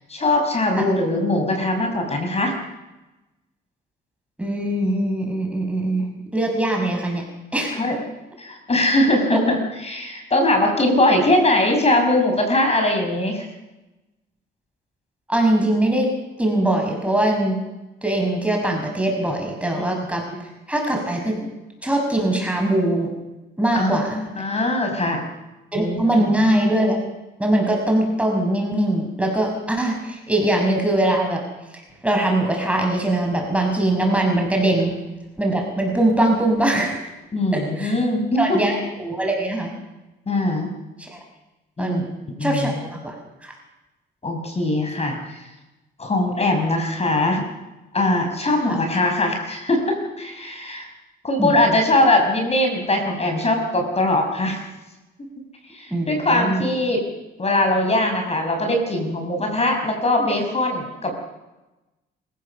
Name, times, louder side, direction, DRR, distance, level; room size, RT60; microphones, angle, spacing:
voice 1, 0.1-2.5 7.8-8.0 8.4-13.4 19.7-19.9 20.3-20.4 23.7-25.2 25.7-26.3 37.3-38.7 40.3-40.7 41.8-42.1 42.4-42.7 44.2-45.4 46.0-47.5 47.9-50.9 51.2-54.6 55.7-57.1 57.4-61.1, left 1 dB, 30° left, 4 dB, 5.8 m, -21 dB
voice 2, 4.4-6.1 6.3-7.2 7.5-8.0 9.3-9.4 15.3-16.1 16.4-17.6 18.0-20.3 20.7-21.5 21.8-23.1 23.6-24.2 25.7-27.0 27.4-31.4 32.0-34.9 35.4-37.0 37.5-37.9 38.4-39.7 41.0-41.2 41.8-42.0 42.4-43.1 43.4-43.5 48.7-48.8 51.4-51.8 55.9-56.6, right 1 dB, 5° right, 1 dB, 5.6 m, -21 dB
26.0 x 16.0 x 6.9 m, 1.0 s
cardioid pair, 90°, 20 cm